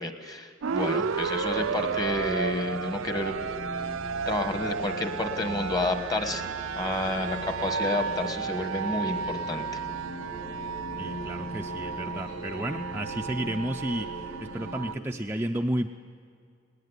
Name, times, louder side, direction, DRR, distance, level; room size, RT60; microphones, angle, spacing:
voice 1, 0.0-3.4 4.3-6.5 6.7-9.8, left 2 dB, 20° left, 7 dB, 1.3 m, -30 dB
sound 1, 0.6-14.9, right 6 dB, 80° right, 0.5 m, -33 dB
sound 2, 1.2-14.9, equal, 85° left, 4.6 m, -41 dB
voice 2, 11.0-15.9, right 1 dB, 10° right, 3 dB, 0.4 m, -32 dB
20.0 x 18.5 x 8.2 m, 2.3 s
head